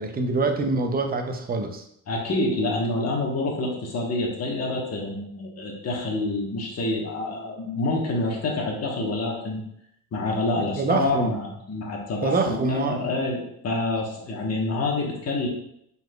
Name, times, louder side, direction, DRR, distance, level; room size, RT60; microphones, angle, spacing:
voice 1, 0.0-1.8 10.3-11.4 12.2-13.1, right 3 dB, 25° right, 5 dB, 0.6 m, -26 dB
voice 2, 2.1-9.6 10.1-15.5, left 2 dB, 40° left, -1 dB, 1.2 m, -27 dB
4.8 x 4.0 x 2.3 m, 0.72 s
cardioid pair, 85°, 40 cm